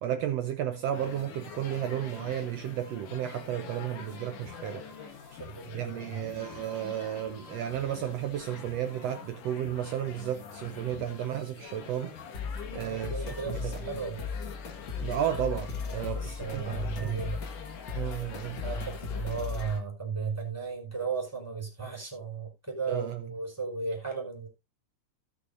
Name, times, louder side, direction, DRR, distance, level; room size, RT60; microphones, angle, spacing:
voice 1, 0.0-4.8 5.7-12.1 12.7-13.7 15.0-17.3 17.9-18.6 22.9-23.3, right 11 dB, 75° right, 1.5 m, -33 dB
sound 1, 0.9-19.8, left 6 dB, 80° left, 3.2 m, -45 dB
voice 2, 5.4-6.2 12.8-14.3 16.0-17.4 18.6-24.5, right 5 dB, 5° right, 4.4 m, -35 dB
sound 2, 12.3-19.7, left 5 dB, 40° left, 2.0 m, -37 dB
17.5 x 6.5 x 2.6 m
omnidirectional pair, 3.7 m